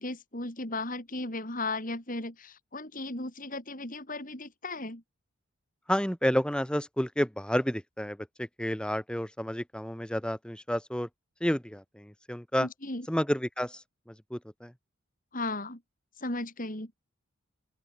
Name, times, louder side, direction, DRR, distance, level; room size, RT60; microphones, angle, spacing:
voice 1, 0.0-5.0 12.6-13.1 15.3-15.8 16.2-16.9, left 2 dB, 40° left, 5.2 m, -36 dB
voice 2, 5.9-11.1 11.4-12.7 13.1-13.8 14.3-14.7, equal, 5° left, 1.4 m, -30 dB
open air
head